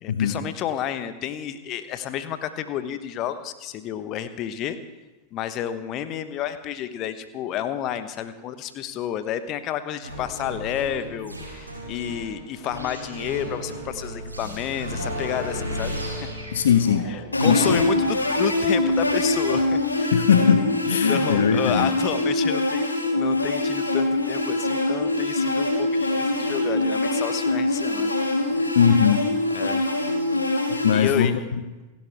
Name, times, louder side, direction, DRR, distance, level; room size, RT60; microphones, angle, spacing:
voice 1, 0.0-4.8 5.3-15.9 16.2-16.3 17.1-20.2 21.1-22.8 23.2-28.2 28.6-28.8 29.5-29.8 30.9-31.3, left 10 dB, 35° left, 11 dB, 1.1 m, -30 dB
sound 1, 10.0-19.8, equal, 85° right, 4.8 m, -35 dB
voice 2, 16.5-17.1 17.5-17.9 20.1-21.9 28.7-29.3 30.8-31.4, left 7 dB, 65° left, 9 dB, 0.8 m, -20 dB
sound 2, 17.3-30.9, left 2 dB, 80° left, 2.1 m, -23 dB
29.0 x 12.0 x 3.6 m, 1.1 s
figure-of-eight pair, 90°, 0 cm